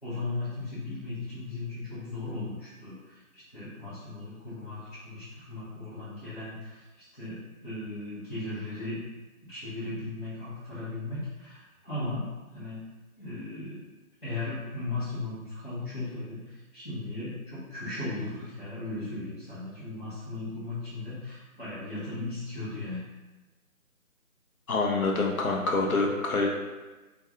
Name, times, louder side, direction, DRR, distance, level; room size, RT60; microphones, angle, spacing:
voice 1, 0.0-9.0 9.4-12.8 13.2-13.8 14.2-23.0, left 2 dB, 40° left, -14 dB, 0.8 m, -37 dB
voice 2, 24.7-26.6, left 3 dB, 75° left, 0 dB, 0.7 m, -26 dB
2.4 x 2.3 x 2.8 m, 1.2 s
figure-of-eight pair, 175°, 43 cm